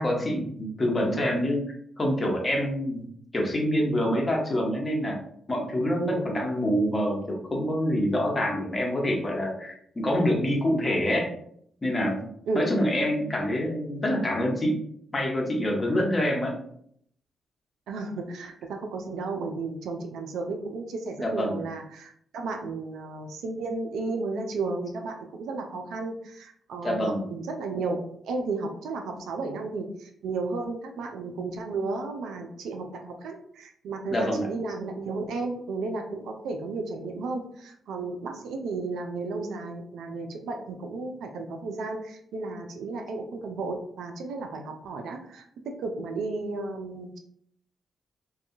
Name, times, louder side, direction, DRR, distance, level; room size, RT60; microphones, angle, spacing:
voice 1, 0.0-1.6 2.0-3.1 3.3-5.2 5.5-11.3 11.8-12.3 12.5-14.8 15.1-16.5 21.2-21.7 26.8-27.3 34.1-34.5, equal, 35° left, 0 dB, 0.9 m, -26 dB
voice 2, 17.9-47.2, right 3 dB, 75° right, 4 dB, 0.4 m, -33 dB
2.6 x 2.3 x 2.5 m, 0.66 s
hypercardioid pair, 45°, 0 cm